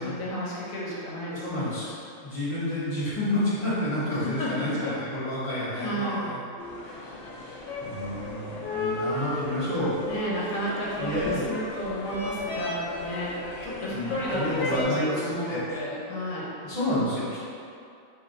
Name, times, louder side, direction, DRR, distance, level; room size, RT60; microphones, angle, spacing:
voice 1, 0.0-1.8 4.1-4.9 5.7-6.3 10.0-13.4 13.6-16.5, equal, 85° left, -5 dB, 1.1 m, -32 dB
voice 2, 1.3-1.9 2.2-6.4 6.7-9.9 11.0-11.5 13.9-15.8 16.6-17.4, left 1 dB, 25° left, -10 dB, 1.0 m, -30 dB
sound 1, 6.6-14.8, left 2 dB, 55° left, 0.8 m, -34 dB
3.1 x 2.7 x 3.8 m, 2.5 s
omnidirectional pair, 1.4 m